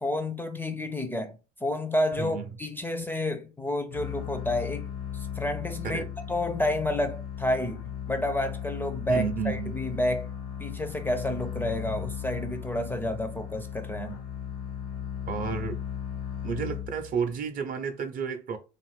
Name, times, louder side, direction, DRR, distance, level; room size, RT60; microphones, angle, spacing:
voice 1, 0.0-4.9 5.1-10.3 10.6-14.2, left 1 dB, 10° left, 0.4 m, -30 dB
voice 2, 2.2-2.5 5.8-6.1 9.1-9.8 15.3-15.8 16.4-18.6, right 6 dB, 45° right, 0.6 m, -31 dB
sound 1, 3.9-17.3, left 9 dB, 75° left, 0.8 m, -36 dB
2.6 x 2.4 x 3.2 m
hypercardioid pair, 75°, 20 cm